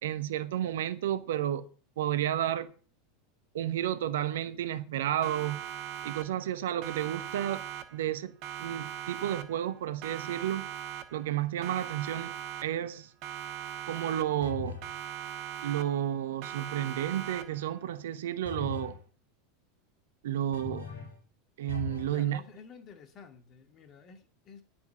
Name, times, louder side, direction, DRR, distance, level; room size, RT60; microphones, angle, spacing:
voice 1, 0.0-1.7 2.0-2.7 3.5-5.7 6.0-7.6 7.9-8.3 8.6-10.7 11.1-12.3 12.6-13.1 13.9-14.8 15.6-19.0 20.2-20.9 21.6-22.4, right 11 dB, 65° right, 0.9 m, -31 dB
Siren, 5.2-6.5 6.8-8.1 8.4-9.7 10.0-11.3 11.6-12.9 13.2-14.5 14.8-16.1 16.4-17.7, right 10 dB, 50° right, 1.3 m, -40 dB
sound 1, 14.4-14.9 18.5-19.0 20.5-21.2 21.7-22.2, left 6 dB, 70° left, 4.4 m, -40 dB
voice 2, 22.1-24.6, left 5 dB, 40° left, 2.6 m, -51 dB
11.0 x 8.6 x 6.9 m
figure-of-eight pair, 80°, 0 cm